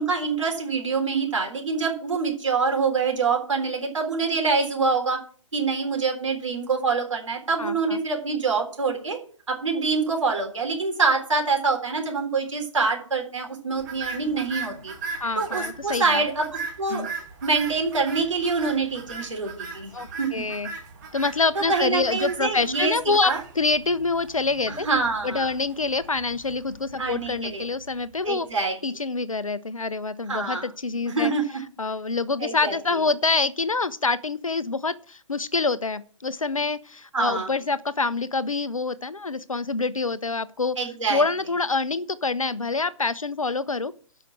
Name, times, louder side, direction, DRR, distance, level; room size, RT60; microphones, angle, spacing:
voice 1, 0.0-5.2 5.5-9.2 9.5-14.9 15.4-17.1 17.4-20.4 21.6-22.9 23.2-23.4 24.7-25.5 27.0-27.7 28.2-28.7 30.3-30.7 31.1-31.6 32.4-33.1 37.1-37.5 40.8-41.2, right 4 dB, 65° right, 3.7 m, -25 dB
voice 2, 7.6-8.0 15.2-16.2 16.9-17.1 19.9-20.7 21.1-23.3 23.6-24.9 25.2-28.5 28.8-31.3 31.8-40.8 41.1-43.9, left 3 dB, 80° left, 0.7 m, -26 dB
sound 1, 13.8-28.1, right 4 dB, 35° right, 2.3 m, -38 dB
11.5 x 5.8 x 6.3 m
figure-of-eight pair, 130°, 17 cm